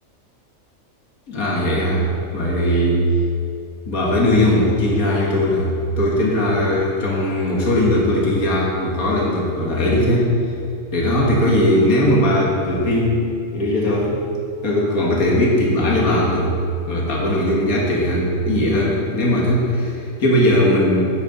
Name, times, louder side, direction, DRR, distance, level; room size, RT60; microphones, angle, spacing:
voice 1, 1.3-3.1 3.9-10.3 10.9-13.1 13.5-14.2 14.6-16.5 16.9-21.0, left 1 dB, 80° left, -3 dB, 2.1 m, -19 dB
14.0 x 9.6 x 4.0 m, 2.6 s
omnidirectional pair, 1.5 m